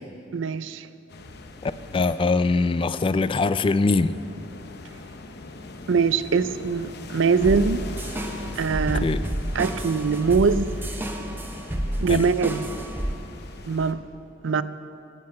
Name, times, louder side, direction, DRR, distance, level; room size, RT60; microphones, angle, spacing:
voice 1, 0.3-0.9 5.9-7.8 8.6-9.1 9.5-10.8 12.0-12.6 13.7-14.0 14.4-14.6, right 5 dB, 85° right, 0.5 m, -22 dB
sound 1, 1.1-13.9, left 2 dB, 60° left, 0.8 m, -42 dB
voice 2, 1.6-4.1 9.0-9.2 12.1-12.3, left 3 dB, 30° left, 0.3 m, -22 dB
sound 2, 7.4-13.1, equal, 10° right, 0.9 m, -30 dB
11.5 x 7.7 x 8.7 m
head